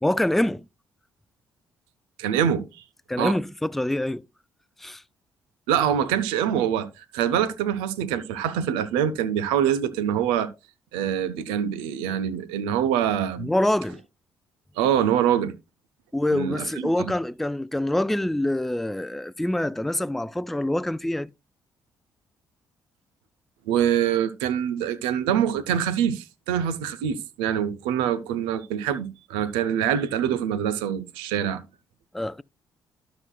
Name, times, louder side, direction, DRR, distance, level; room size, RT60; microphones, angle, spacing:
voice 1, 0.0-0.6 3.1-4.2 4.8-5.0 13.4-14.0 16.1-21.3 32.1-32.4, left 1 dB, 5° left, 0.3 m, -25 dB
voice 2, 2.2-2.8 3.2-3.4 5.7-10.5 10.9-13.5 14.8-15.5 16.3-17.1 23.7-31.6, right 9 dB, 85° right, 0.6 m, -25 dB
12.5 x 6.2 x 2.3 m
hypercardioid pair, 50°, 9 cm